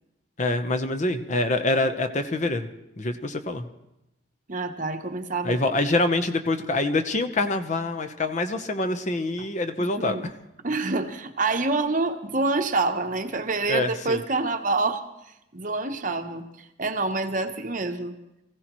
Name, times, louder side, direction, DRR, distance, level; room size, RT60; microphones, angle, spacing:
voice 1, 0.4-2.7 3.0-3.6 5.4-10.1 13.7-14.2, left 2 dB, 35° left, 8 dB, 0.8 m, -25 dB
voice 2, 4.5-5.6 9.8-10.3 10.6-15.0 15.5-16.4 16.8-18.2, right 3 dB, 40° right, 7 dB, 0.9 m, -27 dB
24.5 x 15.5 x 3.0 m, 0.90 s
head